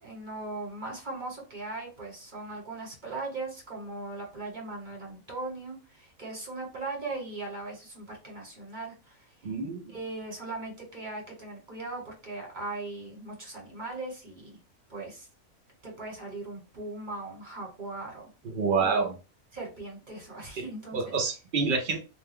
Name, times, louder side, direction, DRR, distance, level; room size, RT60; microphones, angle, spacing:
voice 1, 0.0-9.3 9.9-14.6 14.9-15.3 15.8-18.3 18.7-19.1 19.5-21.1, right 2 dB, 35° right, 1.2 m, -39 dB
voice 2, 9.4-9.9 18.4-19.1 20.6-20.7 20.9-22.0, right 4 dB, 60° right, 0.5 m, -28 dB
2.5 x 2.2 x 3.4 m
omnidirectional pair, 1.6 m